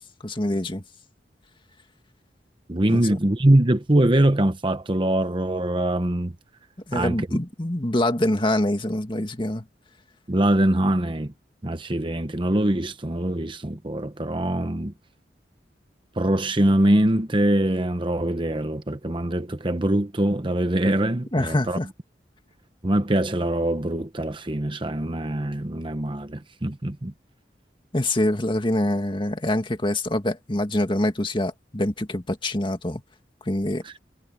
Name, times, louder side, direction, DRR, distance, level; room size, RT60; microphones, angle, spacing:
voice 1, 0.2-0.8 2.9-3.1 6.9-9.6 21.3-21.9 27.9-33.0 33.5-33.8, left 1 dB, 30° left, 2.0 m, -25 dB
voice 2, 2.7-6.3 6.9-7.3 10.3-11.3 11.6-14.9 16.2-21.8 22.8-27.1 33.8-34.0, right 1 dB, 30° right, 1.0 m, -23 dB
head